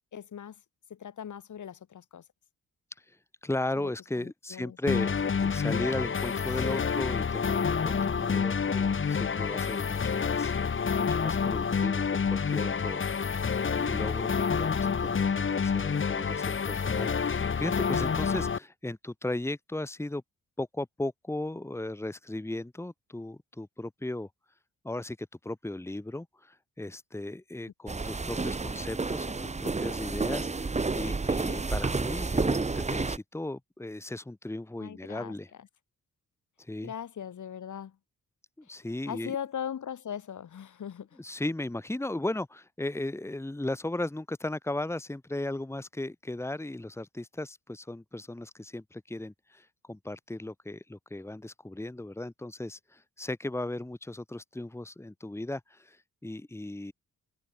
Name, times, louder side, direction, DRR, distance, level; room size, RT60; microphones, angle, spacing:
voice 1, 0.1-0.6 0.9-2.2 3.8-3.9 4.2-4.8 5.0-5.2 34.8-35.7 36.8-38.0 39.0-41.2, left 8 dB, 65° left, 5.1 m, -39 dB
voice 2, 3.4-10.5 11.1-13.0 13.7-20.2 20.6-24.3 24.8-35.5 36.6-36.9 38.6-39.4 41.2-56.9, left 1 dB, 10° left, 2.6 m, -36 dB
sound 1, 4.9-18.6, left 6 dB, 40° left, 3.1 m, -28 dB
sound 2, 27.9-33.2, right 3 dB, 20° right, 2.2 m, -30 dB
wide cardioid pair, 170°, 32 cm